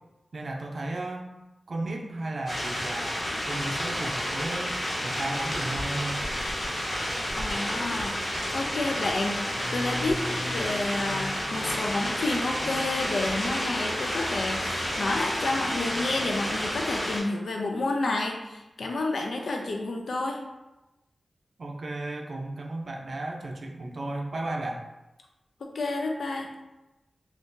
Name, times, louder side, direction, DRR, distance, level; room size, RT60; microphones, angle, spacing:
voice 1, 0.3-1.3 1.7-3.2 3.5-6.3 21.6-24.8, right 2 dB, 60° right, 1 dB, 0.4 m, -34 dB
sound 1, 2.5-17.2, equal, 55° left, 0.9 m, -30 dB
voice 2, 7.4-8.2 8.5-9.4 9.7-20.4 25.7-26.5, left 2 dB, 80° left, 1 dB, 0.4 m, -30 dB
2.6 x 2.4 x 3.6 m, 1.0 s
wide cardioid pair, 125°, 0 cm